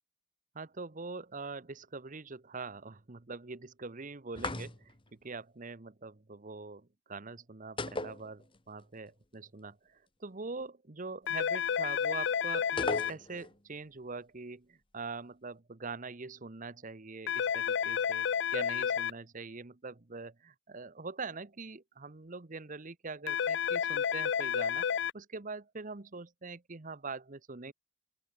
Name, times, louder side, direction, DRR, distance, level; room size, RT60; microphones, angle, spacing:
voice 1, 0.5-18.3 18.5-27.7, right 4 dB, 40° right, 1.0 m, -43 dB
sound 1, 4.4-5.1 7.8-8.8 9.1-9.2 12.8-13.6, left 2 dB, 25° left, 2.2 m, -37 dB
sound 2, 11.3-13.1 17.3-19.1 23.3-25.1, left 7 dB, 60° left, 0.5 m, -31 dB
open air
head